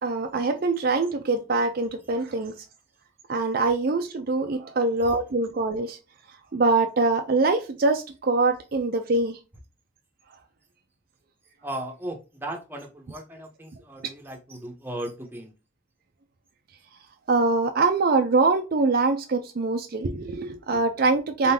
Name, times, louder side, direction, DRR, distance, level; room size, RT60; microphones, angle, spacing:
voice 1, 0.0-2.7 3.3-6.0 6.5-9.4 17.3-21.5, right 3 dB, 50° right, 0.5 m, -23 dB
voice 2, 11.6-15.5, right 1 dB, 10° right, 0.9 m, -36 dB
4.3 x 3.7 x 2.8 m
head